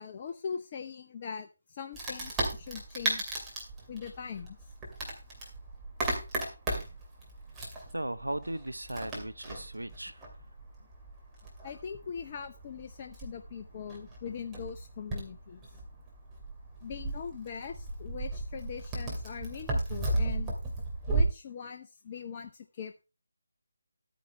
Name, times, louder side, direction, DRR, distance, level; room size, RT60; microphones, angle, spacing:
voice 1, 0.0-3.4 3.9-4.6 11.6-15.6 16.8-20.5 21.1-23.0, left 6 dB, 30° left, 5 dB, 0.7 m, -41 dB
Wood, 1.9-21.2, right 2 dB, 10° right, 2.5 m, -36 dB
voice 2, 7.9-10.2, right 1 dB, 85° right, 15 dB, 0.7 m, -37 dB
13.0 x 9.3 x 3.3 m, 0.29 s
figure-of-eight pair, 155°, 0 cm